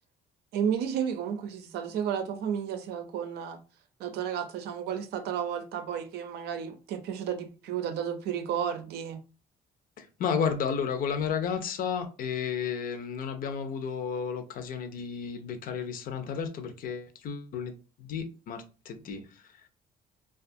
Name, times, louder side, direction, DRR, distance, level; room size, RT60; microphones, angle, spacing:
voice 1, 0.5-3.6 4.0-9.2, right 8 dB, 75° right, 0.5 m, -32 dB
voice 2, 10.0-19.6, left 6 dB, 55° left, 0.5 m, -33 dB
2.4 x 2.3 x 2.6 m
cardioid pair, 110°, 17 cm